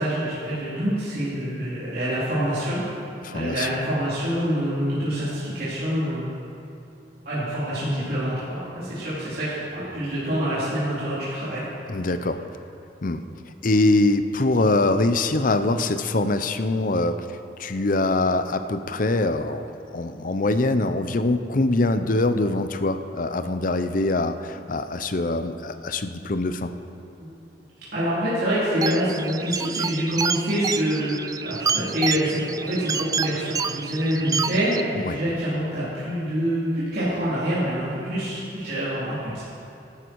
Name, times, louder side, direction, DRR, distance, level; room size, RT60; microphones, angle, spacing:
voice 1, 0.0-2.8 3.3-6.3 7.3-11.6 27.2-27.3 27.9-34.8 35.1-39.4, equal, 60° right, -11 dB, 3.9 m, -26 dB
voice 2, 3.2-3.7 11.9-12.4 13.0-13.2 13.6-17.2 17.6-19.6 19.9-26.7 35.0-35.2, left 2 dB, 50° left, 10 dB, 0.7 m, -23 dB
sound 1, 28.8-34.8, right 6 dB, 20° right, 0.3 m, -28 dB
16.5 x 12.5 x 4.7 m, 2.7 s
head